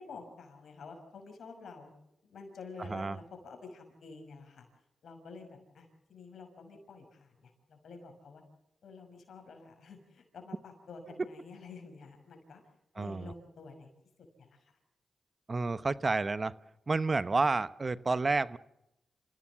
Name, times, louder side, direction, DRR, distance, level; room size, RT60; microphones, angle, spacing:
voice 1, 0.0-1.9 2.2-4.7 5.0-8.4 8.8-12.6 12.9-13.9 14.4-14.7, left 4 dB, 75° left, 5 dB, 6.0 m, -49 dB
voice 2, 2.8-3.2 12.9-13.3 15.5-16.6 16.9-18.6, right 3 dB, 40° right, 16 dB, 1.0 m, -30 dB
28.0 x 16.5 x 7.5 m, 0.88 s
cardioid pair, 55°, 0 cm